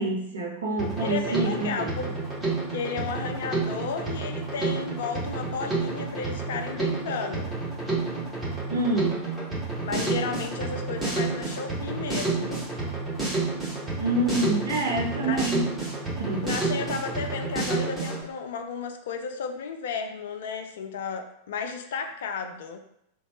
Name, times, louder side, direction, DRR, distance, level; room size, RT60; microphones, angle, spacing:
voice 1, 0.0-2.0 8.7-9.3 14.0-15.7 16.2-16.5, right 1 dB, 70° right, 0 dB, 0.6 m, -27 dB
Drum kit, 0.8-18.2, right 3 dB, 15° right, 1.2 m, -30 dB
voice 2, 1.0-2.1 2.7-7.6 9.8-12.7 15.2-15.5 16.4-22.8, left 5 dB, 60° left, 7 dB, 0.3 m, -33 dB
2.9 x 2.3 x 2.9 m, 0.77 s
figure-of-eight pair, 90°, 0 cm